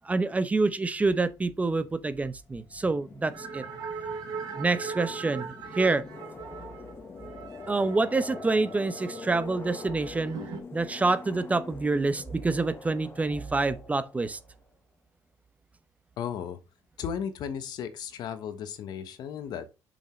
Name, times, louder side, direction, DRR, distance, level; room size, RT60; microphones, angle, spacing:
voice 1, 0.0-3.6 4.6-6.0 7.7-10.4 10.7-14.4, right 3 dB, 20° right, 0.7 m, -27 dB
sound 1, 1.3-14.7, left 4 dB, 30° left, 1.3 m, -45 dB
sound 2, 3.3-10.6, right 5 dB, 65° right, 2.5 m, -40 dB
voice 2, 16.2-16.6 17.0-19.7, left 8 dB, 70° left, 1.2 m, -35 dB
7.3 x 5.4 x 3.2 m
cardioid pair, 100°, 7 cm